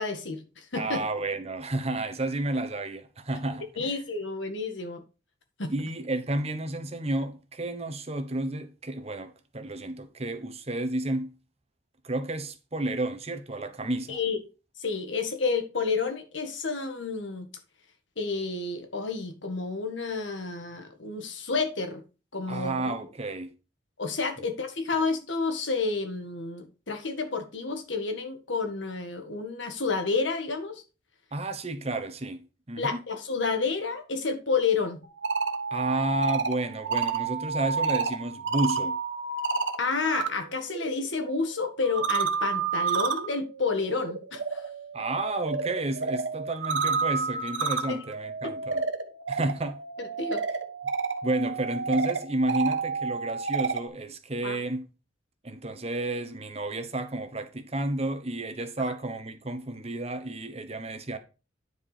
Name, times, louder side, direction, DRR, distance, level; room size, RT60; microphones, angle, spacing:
voice 1, 0.0-1.0 3.8-5.0 5.6-5.7 14.1-14.4 14.8-17.5 18.2-22.0 22.3-22.9 24.0-30.8 32.8-35.0 39.8-44.6 47.9-48.0 48.4-48.5 50.0-50.4 54.4-54.6, left 4 dB, 70° left, 1.7 m, -30 dB
voice 2, 0.7-3.9 5.7-11.3 12.0-14.2 22.5-23.5 31.3-32.4 32.7-33.0 35.7-39.0 44.9-48.8 49.3-49.8 51.2-54.9 55.4-61.2, right 2 dB, 30° right, 1.0 m, -31 dB
sound 1, 35.0-40.3 40.6-53.9, right 5 dB, 75° right, 1.2 m, -30 dB
10.0 x 4.7 x 5.0 m
head